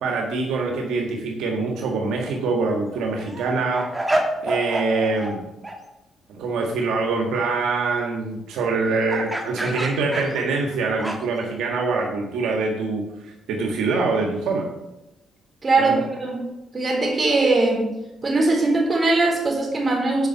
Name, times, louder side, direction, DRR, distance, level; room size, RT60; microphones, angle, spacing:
voice 1, 0.0-3.9 4.4-5.4 6.4-14.7 15.8-16.0, right 3 dB, 85° right, 0 dB, 1.6 m, -24 dB
sound 1, 2.1-2.3 2.8-5.4 5.6-5.8 9.1-11.4, right 1 dB, 15° right, 1.6 m, -28 dB
voice 2, 15.6-16.5 16.7-17.9 18.2-20.3, right 2 dB, 30° right, -1 dB, 3.8 m, -20 dB
8.9 x 5.4 x 6.9 m, 0.93 s
cardioid pair, 90°, 0 cm